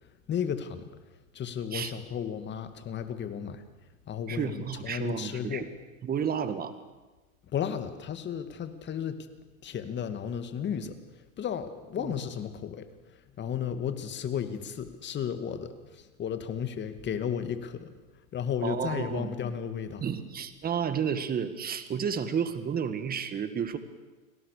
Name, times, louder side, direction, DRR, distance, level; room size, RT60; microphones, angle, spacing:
voice 1, 0.3-0.9 1.3-3.6 4.1-5.7 7.5-9.3 9.6-17.9 18.3-20.0, left 8 dB, 25° left, 9 dB, 2.3 m, -34 dB
voice 2, 4.3-5.7 6.0-6.7 12.0-12.1 18.6-19.3 20.0-23.8, right 7 dB, 20° right, 11 dB, 2.0 m, -31 dB
30.0 x 20.0 x 6.8 m, 1.2 s
hypercardioid pair, 125°, 42 cm